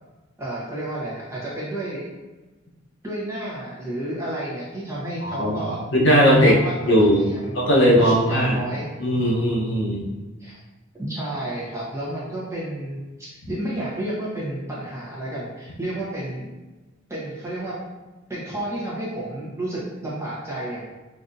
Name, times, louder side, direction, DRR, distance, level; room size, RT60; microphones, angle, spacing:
voice 1, 0.4-2.1 3.0-5.8 6.4-7.5 8.0-8.9 10.4-10.6 10.9-16.5 17.1-17.8 18.3-20.8, right 1 dB, 15° right, -7 dB, 0.9 m, -31 dB
voice 2, 5.2-5.5 5.9-6.6 6.9-7.3 7.5-8.6 9.0-10.0, equal, 65° left, -2 dB, 0.7 m, -18 dB
3.9 x 2.7 x 2.5 m, 1.2 s
head